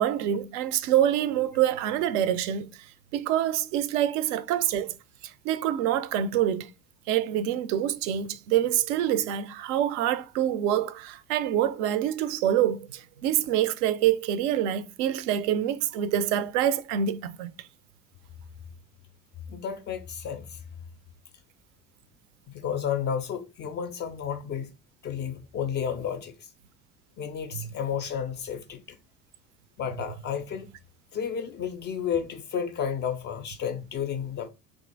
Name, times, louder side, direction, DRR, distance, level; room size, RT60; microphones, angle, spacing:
voice 1, 0.0-2.7 3.1-4.9 5.2-6.7 7.1-17.5 27.5-27.7, right 11 dB, 55° right, 0.5 m, -26 dB
voice 2, 19.5-20.6 22.5-24.7 25.0-26.5 27.2-29.0 29.8-30.7 31.1-34.5, left 8 dB, 25° left, 0.4 m, -32 dB
2.8 x 2.4 x 3.8 m
figure-of-eight pair, 65°, 46 cm